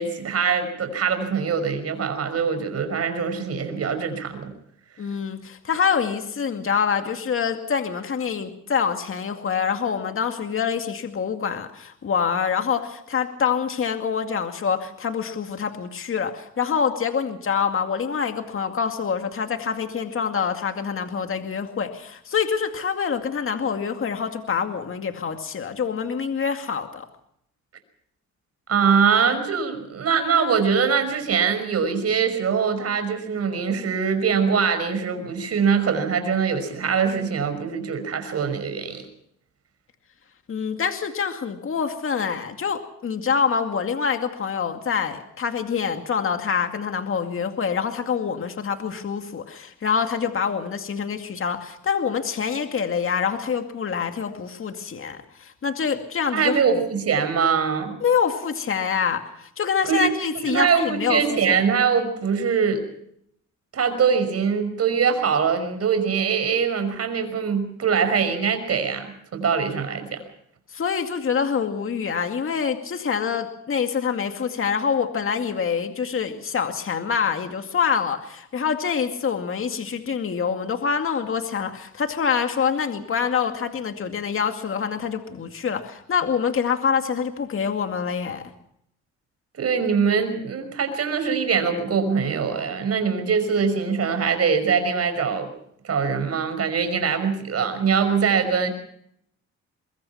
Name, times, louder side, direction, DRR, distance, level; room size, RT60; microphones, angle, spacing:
voice 1, 0.0-4.5 28.7-39.0 56.3-57.9 59.9-60.1 60.4-62.8 63.7-70.2 89.6-95.5 95.8-98.7, right 6 dB, 55° right, 9 dB, 5.8 m, -23 dB
voice 2, 5.0-27.1 40.5-56.5 58.0-61.6 70.7-88.5, left 6 dB, 45° left, 6 dB, 2.3 m, -26 dB
23.5 x 23.0 x 5.8 m, 0.71 s
cardioid pair, 90°, 30 cm